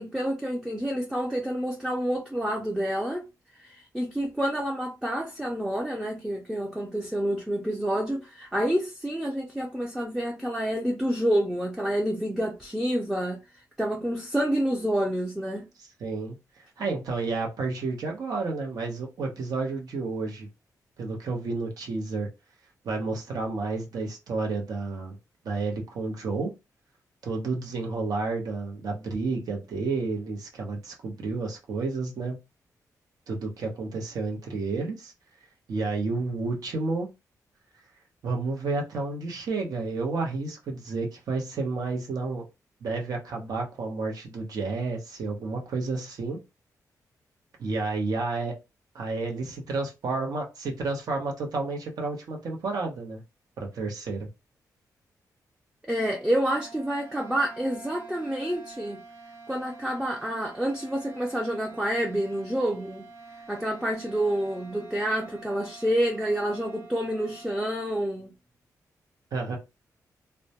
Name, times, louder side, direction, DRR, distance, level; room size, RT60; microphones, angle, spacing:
voice 1, 0.0-3.2 3.6-13.4 13.8-15.7 55.9-59.0 59.5-63.0 63.5-68.3, right 1 dB, 5° right, 0.4 m, -28 dB
voice 2, 15.8-16.3 16.8-20.5 21.0-22.3 22.8-25.2 25.4-26.5 27.2-32.4 33.3-35.1 35.7-37.1 38.2-42.4 42.8-46.4 47.6-48.6 48.9-53.2 53.6-54.3 69.3-69.6, right 3 dB, 70° right, 0.8 m, -31 dB
sound 1, 56.1-67.9, right 4 dB, 35° right, 0.7 m, -47 dB
2.1 x 2.1 x 2.7 m
wide cardioid pair, 135°, 7 cm